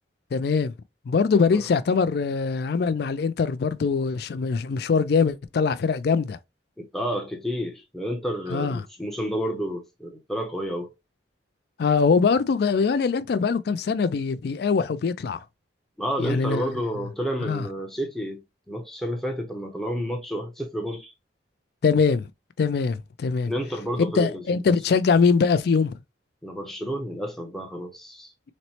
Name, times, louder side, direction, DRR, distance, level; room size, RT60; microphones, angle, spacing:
voice 1, 0.3-0.7 1.1-6.4 8.5-8.8 11.8-15.4 16.2-16.7 17.4-17.7 21.8-22.3 22.6-23.5 24.0-26.0, left 5 dB, 55° left, 0.3 m, -22 dB
voice 2, 6.8-10.9 16.0-21.1 23.4-24.6 26.4-28.3, equal, ahead, 0.5 m, -30 dB
4.1 x 2.0 x 2.9 m
head